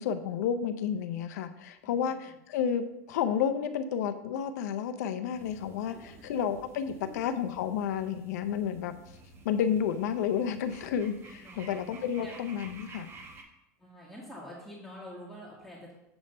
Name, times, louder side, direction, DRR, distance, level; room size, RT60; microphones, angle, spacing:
voice 1, 0.0-8.9 9.4-13.1, left 8 dB, 75° left, 10 dB, 0.6 m, -31 dB
sound 1, 5.3-13.4, right 3 dB, 25° right, 0.9 m, -52 dB
voice 2, 5.9-6.2 6.9-7.2 11.4-11.7 12.2-12.3 13.8-15.9, equal, ahead, -7 dB, 1.5 m, -47 dB
7.0 x 3.3 x 5.3 m, 0.89 s
supercardioid pair, 115°, 9 cm